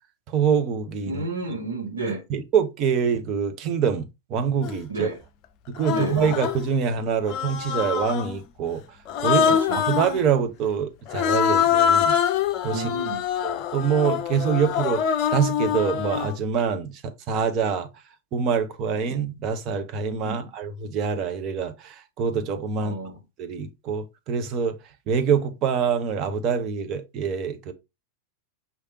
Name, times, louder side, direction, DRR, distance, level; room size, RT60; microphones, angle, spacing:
voice 1, 0.3-1.2 2.3-5.1 5.7-8.8 9.2-9.4 9.7-12.2 12.6-12.9 13.4-17.9 18.3-22.9 23.4-24.8 25.1-27.7, right 7 dB, 35° right, 0.8 m, -25 dB
voice 2, 1.1-2.2 4.9-5.2 5.9-6.2 9.3-9.8 12.7-13.2 20.2-20.4 22.8-23.2, right 2 dB, 70° right, 1.7 m, -31 dB
Human voice, 4.6-4.8 5.8-6.6 7.3-8.3 9.1-10.2 11.1-16.3, left 8 dB, 40° left, 0.5 m, -24 dB
5.5 x 3.3 x 2.8 m
figure-of-eight pair, 90°, 0 cm